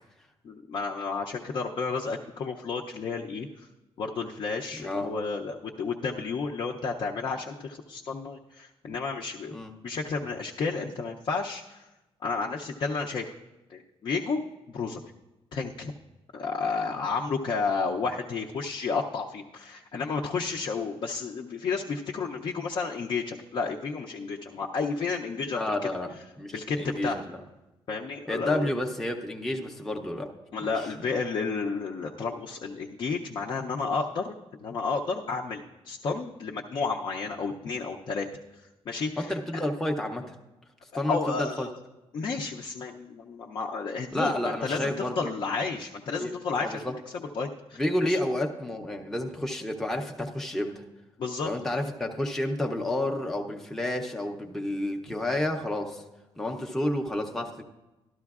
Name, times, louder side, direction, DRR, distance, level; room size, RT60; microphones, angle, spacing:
voice 1, 0.4-3.7 4.0-9.6 9.8-11.8 12.2-13.3 13.7-14.4 14.7-15.0 15.5-15.9 16.3-25.7 26.5-27.2 27.9-28.7 30.5-38.3 38.9-39.3 41.1-41.7 42.1-46.8 47.3-48.2 51.2-51.5, left 4 dB, 50° left, 0 dB, 0.5 m, -31 dB
voice 2, 4.8-5.1 9.5-9.7 25.5-26.1 26.4-27.4 28.3-30.3 30.6-30.9 39.2-40.4 40.9-41.7 44.1-45.4 46.2-46.3 46.6-46.9 47.8-50.8 51.4-56.0 56.4-57.6, left 1 dB, 5° left, 1 dB, 0.6 m, -30 dB
12.5 x 12.0 x 2.4 m, 1.0 s
cardioid pair, 155°, 10 cm